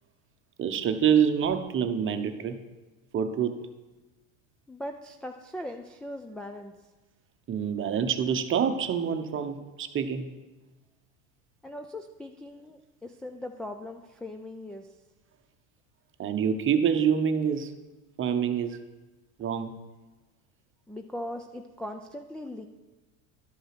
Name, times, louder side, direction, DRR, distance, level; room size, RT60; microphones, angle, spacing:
voice 1, 0.6-2.6 3.1-3.6 7.5-10.3 16.2-17.7 18.2-18.8 19.4-19.7, right 7 dB, 30° right, 8 dB, 0.9 m, -26 dB
voice 2, 4.7-6.7 11.6-14.9 20.9-22.7, left 1 dB, ahead, 1 dB, 0.4 m, -39 dB
11.5 x 5.3 x 5.9 m, 1.1 s
hypercardioid pair, 95°, 40 cm